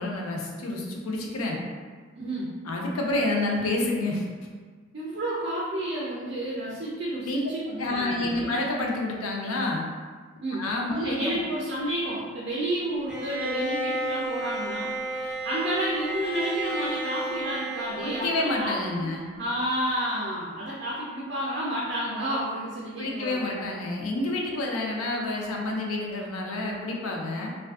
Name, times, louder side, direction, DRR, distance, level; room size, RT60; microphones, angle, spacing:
voice 1, 0.0-1.6 2.6-4.3 7.3-7.5 7.8-9.9 10.5-11.2 18.0-19.3 23.0-27.5, left 2 dB, 80° left, -1 dB, 0.4 m, -29 dB
voice 2, 2.2-2.5 4.9-8.7 10.4-10.7 10.9-19.1 19.3-23.4, right 1 dB, 50° right, -5 dB, 0.4 m, -31 dB
Bowed string instrument, 13.1-19.1, right 2 dB, 5° right, 0.7 m, -32 dB
2.4 x 2.3 x 2.3 m, 1.5 s
head